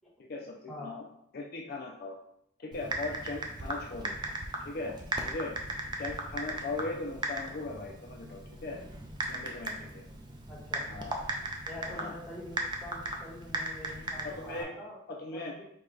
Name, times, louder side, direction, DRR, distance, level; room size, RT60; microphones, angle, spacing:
voice 1, 0.2-1.0 1.3-2.2 2.6-4.1 4.7-4.9 5.2-5.5 6.0-8.8 9.3-10.0 10.9-11.1 11.9-12.1 14.2-14.7 15.1-15.5, left 3 dB, 50° left, 0 dB, 0.4 m, -38 dB
Typing, 2.7-14.6, right 2 dB, 20° right, 0.4 m, -38 dB
voice 2, 10.5-10.9 11.7-15.0 15.3-15.6, left 1 dB, ahead, -7 dB, 1.2 m, -45 dB
4.7 x 2.2 x 3.8 m, 0.75 s
head